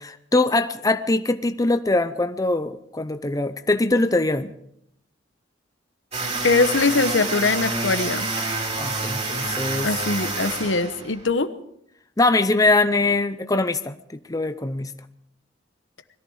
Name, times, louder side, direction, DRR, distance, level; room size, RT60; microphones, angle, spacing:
voice 1, 0.0-4.5 8.7-9.9 12.2-13.9 14.3-14.9, left 2 dB, 20° left, 10 dB, 0.6 m, -22 dB
sound 1, 6.1-11.3, right 2 dB, 35° right, 3.5 m, -28 dB
voice 2, 6.4-8.3 9.8-11.5, left 3 dB, 80° left, 11 dB, 1.1 m, -22 dB
21.5 x 14.0 x 4.9 m, 0.73 s
head